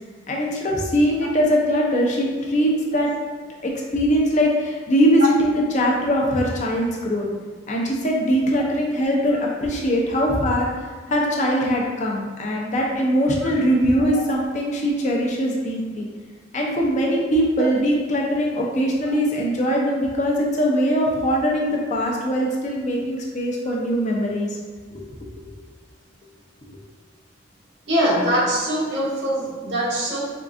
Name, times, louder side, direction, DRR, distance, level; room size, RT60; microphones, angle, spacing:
voice 1, 0.3-3.1 3.6-7.3 7.7-10.7 11.1-16.1 16.5-24.5 24.9-25.0 26.7-26.8, equal, 40° left, -1 dB, 0.6 m, -21 dB
voice 2, 27.9-30.2, right 1 dB, 75° right, -3 dB, 0.9 m, -23 dB
4.5 x 2.4 x 2.5 m, 1.5 s
head